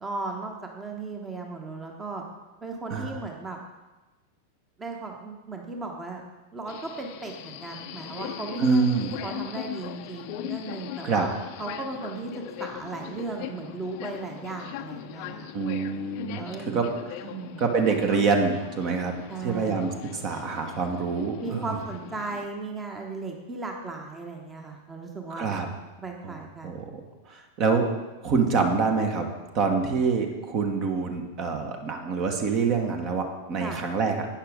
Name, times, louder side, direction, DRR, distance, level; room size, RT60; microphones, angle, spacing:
voice 1, 0.0-2.2 2.6-3.6 4.8-6.2 6.5-15.5 16.3-16.9 17.2-17.7 19.3-19.8 21.4-25.5 26.0-26.8 33.6-33.8, right 3 dB, 15° right, 2 dB, 1.1 m, -36 dB
Subway metro underground, 6.7-22.5, left 11 dB, 45° left, 0.6 m, -40 dB
voice 2, 8.6-9.1 11.0-11.3 15.5-16.4 16.7-16.9 17.6-19.1 19.4-21.8 25.3-25.7 26.2-26.4 26.6-27.0 27.3-27.9 28.2-29.3 29.5-34.3, right 5 dB, 40° right, 4 dB, 1.2 m, -26 dB
11.5 x 8.9 x 3.6 m, 1.1 s
figure-of-eight pair, 90°, 0 cm